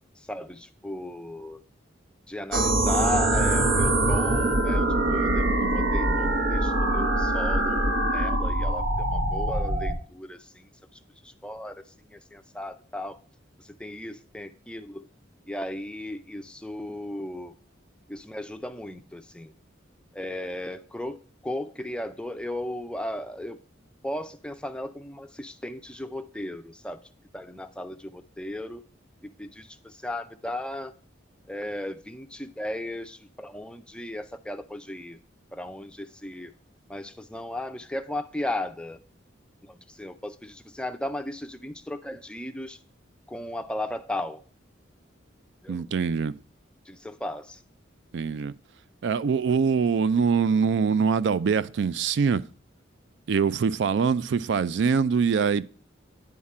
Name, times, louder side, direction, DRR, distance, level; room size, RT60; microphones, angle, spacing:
voice 1, 0.3-1.6 2.3-10.7 11.4-11.8 12.1-13.2 13.8-15.1 15.5-17.5 18.1-19.5 20.1-21.2 21.4-23.6 24.0-27.0 27.3-28.8 29.2-30.9 31.5-35.2 35.5-36.5 36.9-39.0 39.7-42.8 43.3-44.4 45.6-45.7 46.9-47.6, left 1 dB, 5° left, 0.4 m, -35 dB
sound 1, 2.5-10.0, right 1 dB, 85° right, 1.0 m, -23 dB
voice 2, 45.7-46.4 48.1-48.5 49.0-52.4 53.3-55.7, right 6 dB, 65° right, 0.3 m, -23 dB
9.5 x 3.7 x 4.2 m
head